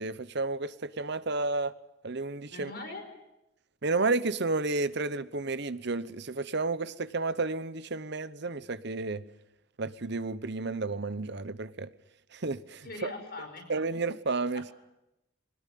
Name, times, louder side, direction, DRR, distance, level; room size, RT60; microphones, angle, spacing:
voice 1, 0.0-1.7 2.0-2.7 3.8-9.2 9.8-11.9 12.3-13.1 13.7-14.6, right 3 dB, 55° right, 1.0 m, -31 dB
voice 2, 2.5-3.1 12.8-13.7 14.5-14.7, left 2 dB, 45° left, 5.1 m, -41 dB
22.0 x 19.0 x 9.4 m
head